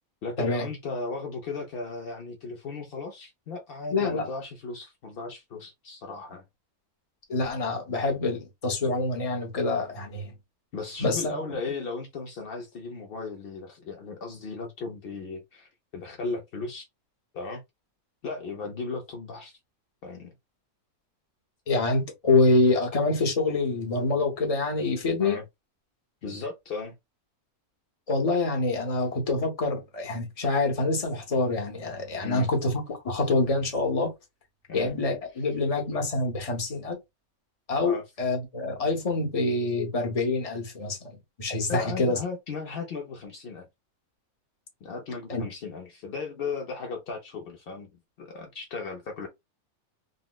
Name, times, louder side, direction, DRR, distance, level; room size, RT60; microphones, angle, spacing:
voice 1, 0.2-6.4 10.7-16.9 17.3-17.6 18.2-19.6 20.0-20.3 25.2-25.4 26.2-26.9 32.2-32.5 34.7-34.9 35.4-35.5 37.8-38.0 41.7-43.7 44.8-47.9 48.2-49.3, left 4 dB, 75° left, 0.5 m, -36 dB
voice 2, 3.9-4.3 7.3-10.3 11.0-11.4 21.7-25.4 28.1-34.1 34.7-37.0 37.7-42.2 45.3-45.4, left 3 dB, 35° left, 0.7 m, -26 dB
3.9 x 2.0 x 2.2 m
omnidirectional pair, 1.6 m